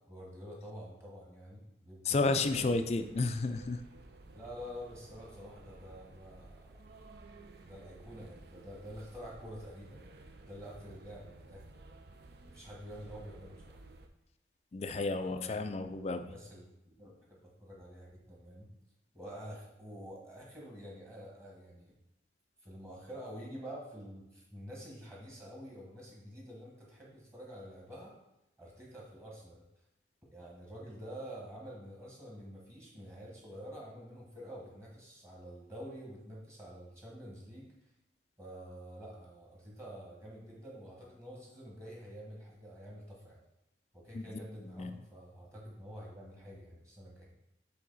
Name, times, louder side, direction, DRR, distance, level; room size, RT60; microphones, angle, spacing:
voice 1, 0.1-2.8 4.3-6.7 7.6-10.1 10.4-12.0 12.5-13.8 15.2-15.7 16.3-18.7 19.1-21.9 22.6-28.1 28.6-29.6 30.3-37.7 38.4-43.4 43.9-47.3, equal, 15° right, -4 dB, 1.4 m, -48 dB
voice 2, 2.1-3.8 14.7-16.3 44.1-44.4 44.8-45.0, left 3 dB, 35° left, 9 dB, 0.4 m, -32 dB
sound 1, 2.4-14.1, right 2 dB, 60° right, 0.5 m, -54 dB
7.4 x 3.5 x 4.0 m, 0.88 s
head